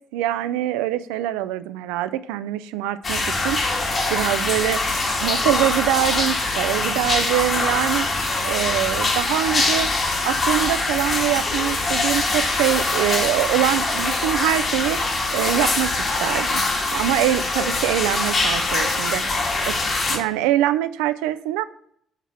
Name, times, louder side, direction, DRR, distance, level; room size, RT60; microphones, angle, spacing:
voice 1, 0.1-4.8 5.2-8.1 8.4-9.9 10.2-15.0 15.3-16.6 16.9-19.2 19.7-19.8 20.1-21.6, right 13 dB, 70° right, 14 dB, 0.3 m, -24 dB
sound 1, 3.0-20.2, left 2 dB, 40° left, 2.1 m, -23 dB
7.3 x 4.6 x 5.7 m, 0.68 s
figure-of-eight pair, 45°, 0 cm